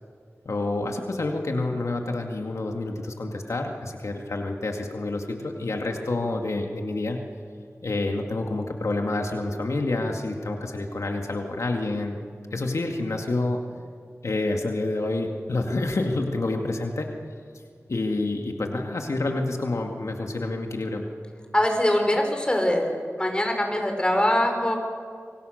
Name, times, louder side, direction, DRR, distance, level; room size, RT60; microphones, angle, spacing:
voice 1, 0.5-7.2 7.8-12.2 12.5-13.6 14.2-17.1 17.9-21.0, left 2 dB, 85° left, 2 dB, 2.1 m, -28 dB
voice 2, 21.5-22.9 23.2-24.8, left 1 dB, 20° left, 3 dB, 5.0 m, -22 dB
27.5 x 24.5 x 6.6 m, 2.2 s
wide cardioid pair, 65°, 5 cm